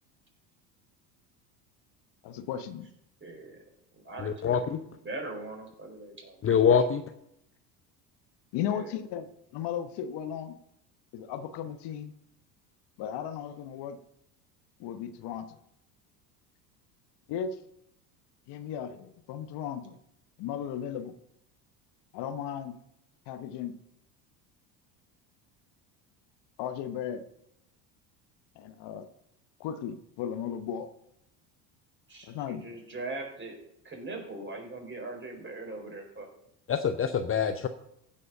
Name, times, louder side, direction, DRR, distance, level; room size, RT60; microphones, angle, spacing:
voice 1, 2.2-2.9 8.5-10.6 11.1-12.1 13.0-14.0 14.8-15.5 17.3-17.6 18.5-20.0 20.4-21.1 22.1-22.8 23.3-23.7 26.6-27.2 28.6-29.1 29.6-30.9 32.2-32.6, left 9 dB, 55° left, 10 dB, 1.0 m, -35 dB
voice 2, 3.2-3.6 3.9-4.7 5.0-6.5 8.7-8.9 32.1-33.6 33.8-36.3, right 2 dB, 25° right, 1 dB, 4.3 m, -41 dB
voice 3, 4.2-4.8 6.4-7.0 36.7-37.7, left 7 dB, 25° left, 8 dB, 0.7 m, -25 dB
15.5 x 5.5 x 5.4 m, 0.79 s
hypercardioid pair, 75°, 49 cm